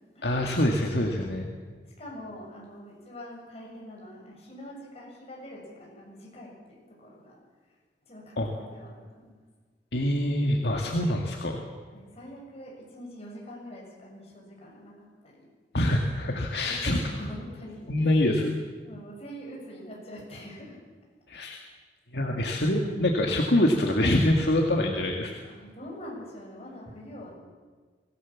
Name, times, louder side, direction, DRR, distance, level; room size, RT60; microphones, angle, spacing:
voice 1, 0.2-1.5 8.4-8.5 9.9-11.6 15.7-17.0 17.9-18.5 21.3-21.6 22.1-25.3, left 1 dB, 65° left, 1 dB, 2.0 m, -25 dB
voice 2, 2.0-7.4 8.1-9.4 11.9-15.5 16.2-18.5 18.8-20.8 25.4-27.4, equal, 35° left, -3 dB, 7.5 m, -44 dB
24.0 x 17.0 x 7.3 m, 1.5 s
head